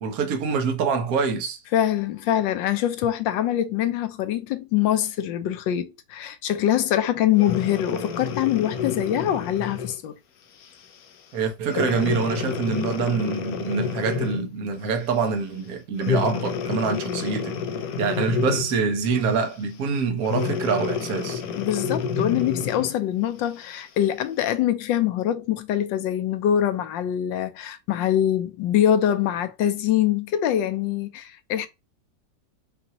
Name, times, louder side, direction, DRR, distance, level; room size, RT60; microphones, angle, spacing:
voice 1, 0.0-1.6 11.3-17.6 18.0-21.4, right 5 dB, 55° right, 1.3 m, -25 dB
voice 2, 1.7-10.2 21.5-31.7, left 11 dB, 80° left, 1.4 m, -24 dB
Breathing, 7.4-10.0 10.6-10.9 11.7-14.6 16.0-18.9 20.2-23.0 23.6-23.7, left 6 dB, 65° left, 1.0 m, -29 dB
5.7 x 2.7 x 2.9 m
omnidirectional pair, 2.0 m